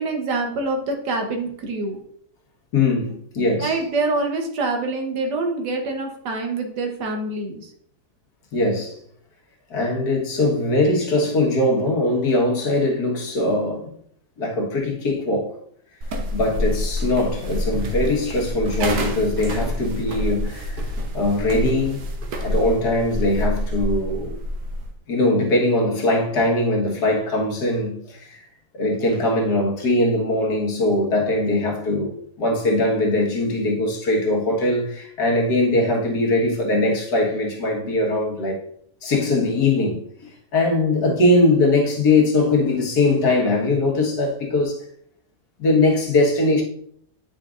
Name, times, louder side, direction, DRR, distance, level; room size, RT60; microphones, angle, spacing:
voice 1, 0.0-2.0 3.6-7.7, right 3 dB, 90° right, 1.7 m, -25 dB
voice 2, 2.7-3.8 8.5-9.0 9.7-14.0 14.4-15.6 16.3-20.9 21.1-22.0 22.4-24.4 25.1-28.4 28.7-38.6 39.0-44.8 45.6-46.6, left 2 dB, 70° left, 1.9 m, -21 dB
sound 1, 16.0-24.9, equal, 65° right, 1.3 m, -27 dB
9.0 x 5.1 x 2.5 m
omnidirectional pair, 1.8 m